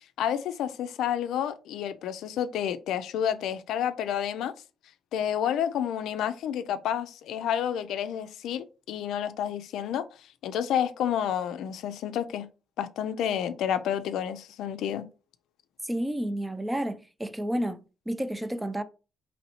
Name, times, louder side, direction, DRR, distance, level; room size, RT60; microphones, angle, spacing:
voice 1, 0.0-4.5 5.1-10.1 10.4-12.5 12.8-15.1, left 9 dB, 80° left, 0.4 m, -30 dB
voice 2, 15.8-18.8, right 1 dB, 10° right, 0.4 m, -31 dB
4.0 x 3.1 x 2.9 m
cardioid pair, 90°, 0 cm